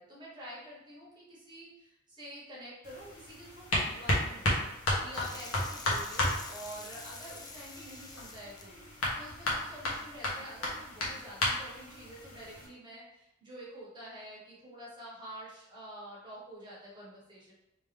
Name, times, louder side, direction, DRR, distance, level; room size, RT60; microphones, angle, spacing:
voice 1, 0.0-4.6 5.0-17.5, equal, 20° right, -6 dB, 1.4 m, -48 dB
sound 1, 2.8-12.7, left 1 dB, 80° left, 1.1 m, -34 dB
sound 2, 5.1-10.3, left 3 dB, 20° left, 0.4 m, -48 dB
3.4 x 3.0 x 3.5 m, 0.87 s
head